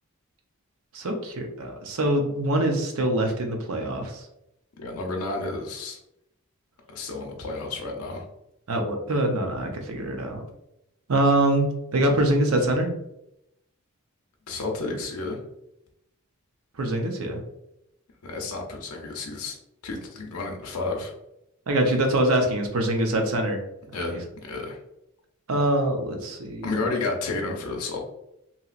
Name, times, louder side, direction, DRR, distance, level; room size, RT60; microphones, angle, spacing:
voice 1, 0.9-4.2 8.7-10.4 11.1-12.9 16.8-17.4 21.7-23.6 23.9-24.2 25.5-26.7, right 1 dB, 75° right, 3 dB, 0.6 m, -24 dB
voice 2, 4.8-6.0 6.9-8.2 14.5-15.4 18.2-19.6 19.8-21.1 23.9-24.2 24.5-24.8 26.6-28.0, left 3 dB, 85° left, 0 dB, 0.6 m, -31 dB
2.9 x 2.7 x 2.4 m, 0.83 s
head